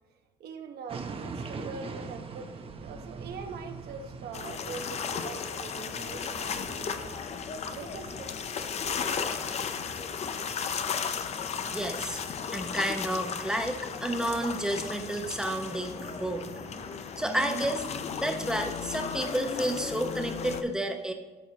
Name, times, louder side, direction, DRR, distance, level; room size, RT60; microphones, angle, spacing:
voice 1, 0.4-7.2 7.7-8.4 9.8-9.9, right 5 dB, 70° right, 5 dB, 1.0 m, -43 dB
sound 1, 0.9-17.0, right 4 dB, 35° right, 0.7 m, -46 dB
sound 2, 4.3-20.6, left 6 dB, 40° left, 0.5 m, -35 dB
voice 2, 11.7-12.2 12.5-16.5 17.2-17.9 18.2-21.1, right 1 dB, 5° right, 4 dB, 0.9 m, -31 dB
13.0 x 4.8 x 2.9 m, 1.2 s
cardioid pair, 110°, 17 cm